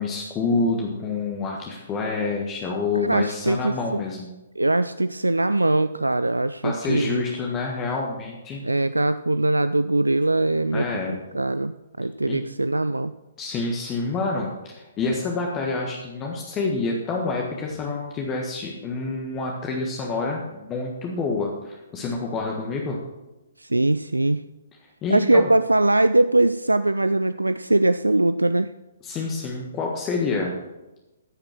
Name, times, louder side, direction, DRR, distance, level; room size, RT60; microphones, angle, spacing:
voice 1, 0.0-4.3 6.6-8.7 10.7-11.2 12.3-12.4 13.4-23.0 25.0-25.5 29.0-30.5, left 3 dB, 20° left, 0 dB, 1.5 m, -27 dB
voice 2, 2.9-4.0 4.6-7.2 8.6-13.1 23.6-24.4 25.1-28.7, right 2 dB, 85° right, 13 dB, 0.3 m, -21 dB
14.0 x 6.7 x 6.0 m, 1.0 s
figure-of-eight pair, 130°, 0 cm